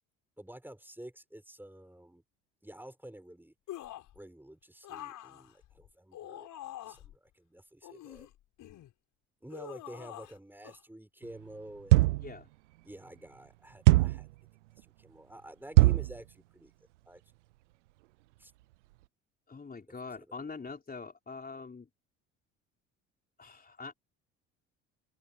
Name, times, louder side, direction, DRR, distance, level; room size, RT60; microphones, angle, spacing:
voice 1, 0.4-2.2 2.6-3.5 4.1-6.5 6.9-8.3 9.4-12.1 12.8-14.3 14.8-16.7 17.1-17.2 18.4-18.5 20.2-20.3, right 1 dB, 5° right, 5.6 m, -49 dB
sound 1, 3.7-4.2 4.8-7.2 7.8-8.9 9.5-10.4 10.6-10.8, left 13 dB, 60° left, 6.1 m, -46 dB
sound 2, 11.9-12.3 13.9-14.3 15.8-16.1, right 19 dB, 85° right, 0.5 m, -21 dB
voice 2, 19.5-21.9 23.4-23.9, left 4 dB, 25° left, 4.6 m, -44 dB
hypercardioid pair, 65°, 35 cm